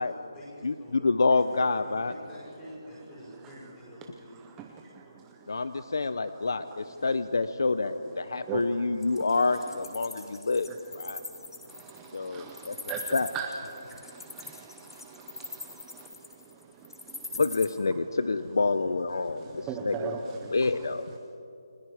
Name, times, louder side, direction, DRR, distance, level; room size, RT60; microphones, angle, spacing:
voice 1, 0.0-1.1 1.7-5.3, equal, 10° left, -5 dB, 5.3 m, -48 dB
voice 2, 0.6-2.1 5.5-10.7 11.0-11.2 12.1-12.7 13.1-13.3 17.3-20.2 20.5-21.1, left 3 dB, 55° left, 12 dB, 0.7 m, -27 dB
voice 3, 4.4-5.9 6.2-6.5 8.3-9.7 10.1-10.4 10.7-10.8 11.1-17.4 19.2-20.9, right 6 dB, 5° right, 2 dB, 0.6 m, -41 dB
Wild animals, 9.0-17.6, left 3 dB, 80° left, 4.3 m, -41 dB
29.5 x 21.0 x 5.0 m, 2.7 s
hypercardioid pair, 175°, 2 cm